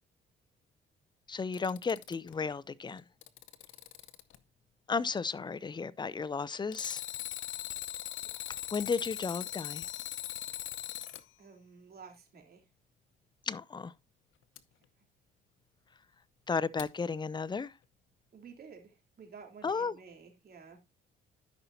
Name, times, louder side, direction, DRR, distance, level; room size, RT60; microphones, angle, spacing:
voice 1, 1.3-3.0 4.9-7.0 8.7-9.9 13.5-13.9 16.5-17.7 19.6-20.0, left 5 dB, 20° left, 0.5 m, -34 dB
Alarm, 1.4-2.3 3.0-4.4 6.7-11.2 14.6-14.7 16.8-16.9, left 13 dB, 85° left, 0.8 m, -40 dB
voice 2, 11.4-12.6 18.3-20.8, right 5 dB, 50° right, 3.3 m, -52 dB
13.0 x 5.7 x 2.7 m
cardioid pair, 90°, 20 cm